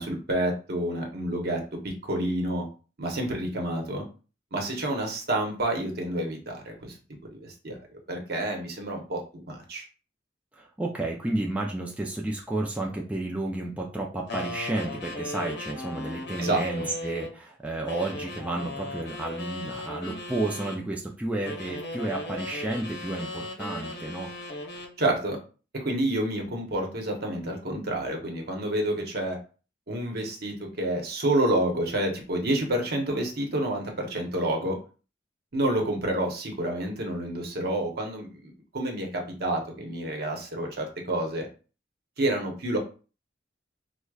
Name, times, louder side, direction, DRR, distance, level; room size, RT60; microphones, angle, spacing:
voice 1, 0.0-2.7 3.0-4.1 4.5-6.9 7.2-9.8 16.4-16.9 25.0-25.4 25.7-29.4 29.9-34.8 35.5-41.5 42.2-42.8, right 1 dB, 60° right, 2 dB, 0.9 m, -29 dB
voice 2, 10.6-24.3, right 2 dB, 10° right, -1 dB, 0.4 m, -31 dB
sound 1, 14.3-17.4 17.9-20.8 21.4-25.0, left 2 dB, 65° left, 0.8 m, -37 dB
4.6 x 2.1 x 2.3 m, 0.36 s
head